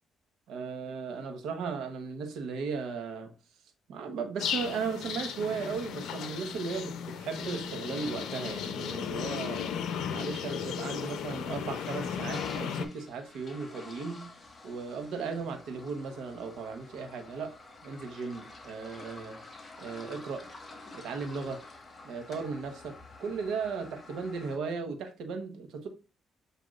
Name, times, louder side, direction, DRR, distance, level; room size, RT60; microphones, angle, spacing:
voice 1, 0.5-3.3 3.9-9.6 10.1-14.3 14.6-17.6 17.8-19.4 19.8-20.5 20.9-21.6 22.0-25.9, right 5 dB, 85° right, 1.0 m, -36 dB
sound 1, 4.4-12.9, left 8 dB, 80° left, 0.5 m, -35 dB
Toilet flush, 11.7-24.6, left 3 dB, 35° left, 1.5 m, -49 dB
7.8 x 2.7 x 2.5 m
cardioid pair, 90°, 0 cm